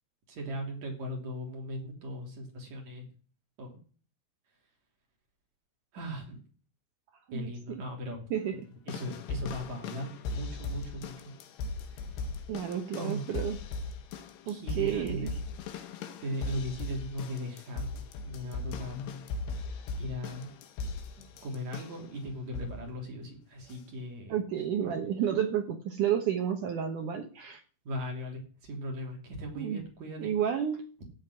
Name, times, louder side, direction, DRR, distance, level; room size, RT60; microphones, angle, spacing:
voice 1, 0.3-3.1 3.6-3.7 5.9-6.4 7.3-8.3 8.9-11.3 13.0-13.3 14.5-15.3 16.2-19.1 20.0-20.5 21.4-24.4 27.9-30.3, equal, 40° right, 1 dB, 4.0 m, -38 dB
voice 2, 7.3-7.8 8.3-8.6 12.5-13.6 14.5-15.4 24.3-27.6 29.5-29.8 30.2-30.8, right 9 dB, 85° right, 4 dB, 1.8 m, -31 dB
sound 1, 8.9-22.1 22.5-22.9 23.7-23.8, left 3 dB, 75° left, 3.2 m, -38 dB
14.5 x 5.1 x 9.3 m, 0.40 s
omnidirectional pair, 5.3 m